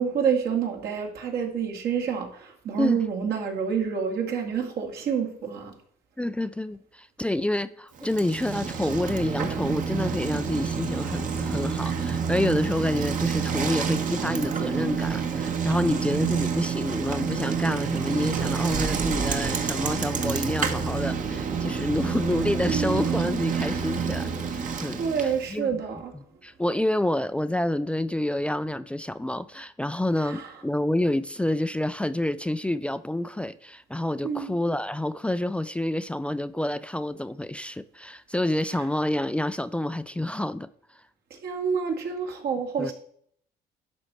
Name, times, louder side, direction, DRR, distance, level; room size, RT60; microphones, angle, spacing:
voice 1, 0.0-5.7 22.6-23.3 25.0-26.1 30.2-30.5 34.2-34.5 41.4-42.9, right 7 dB, 70° right, 2.5 m, -28 dB
voice 2, 6.2-25.8 26.1-40.7 42.8-42.9, left 1 dB, 5° left, 0.4 m, -28 dB
Bicycle, 8.0-25.5, right 6 dB, 50° right, 1.4 m, -28 dB
11.5 x 4.3 x 7.6 m
cardioid pair, 110°, 17 cm